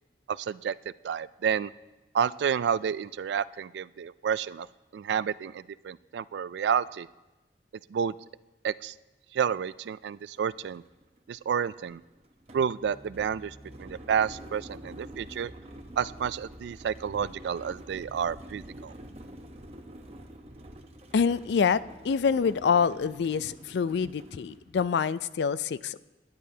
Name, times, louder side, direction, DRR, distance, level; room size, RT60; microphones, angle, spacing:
voice 1, 0.3-0.8 1.0-1.7 2.1-4.7 4.9-7.1 7.9-8.1 8.6-8.9 9.3-10.8 11.3-12.0 12.5-15.5 16.0-18.9, right 7 dB, 75° right, 18 dB, 0.3 m, -30 dB
sound 1, 9.8-9.9 10.2-25.0, right 1 dB, 35° right, 0.9 m, -48 dB
Piano, 12.8-22.4, equal, 10° left, 0.8 m, -53 dB
voice 2, 21.1-26.0, left 6 dB, 75° left, 16 dB, 0.4 m, -26 dB
19.0 x 11.0 x 2.8 m, 1.1 s
head